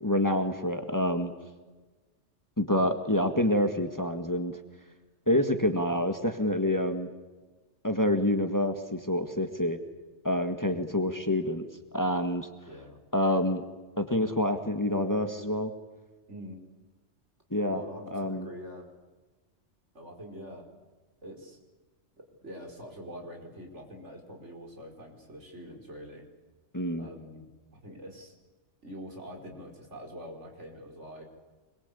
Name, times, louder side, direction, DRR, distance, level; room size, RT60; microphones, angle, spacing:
voice 1, 0.0-1.3 2.6-4.6 5.3-7.1 7.8-9.8 10.2-11.6 11.9-12.5 13.1-13.6 14.0-15.7 17.5-17.8 18.1-18.5 26.7-27.1, left 1 dB, 15° left, 7 dB, 1.7 m, -27 dB
voice 2, 10.6-11.0 12.7-13.0 16.3-16.6 17.7-18.9 19.9-20.7 21.2-21.6 22.2-26.3 27.0-28.3 28.8-31.2, equal, 75° right, 2 dB, 5.3 m, -45 dB
25.0 x 22.5 x 8.4 m, 1.3 s
omnidirectional pair, 1.2 m